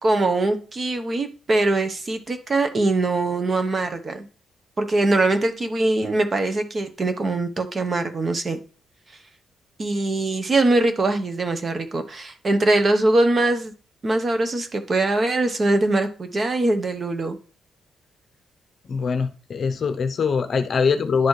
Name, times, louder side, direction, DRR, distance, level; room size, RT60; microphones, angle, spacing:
voice 1, 0.0-4.3 4.8-8.6 9.8-13.7 14.0-17.4, right 2 dB, 30° right, 8 dB, 0.9 m, -22 dB
voice 2, 18.8-21.3, left 5 dB, 45° left, 9 dB, 0.7 m, -23 dB
11.0 x 4.1 x 3.2 m, 0.37 s
cardioid pair, 125°, 0 cm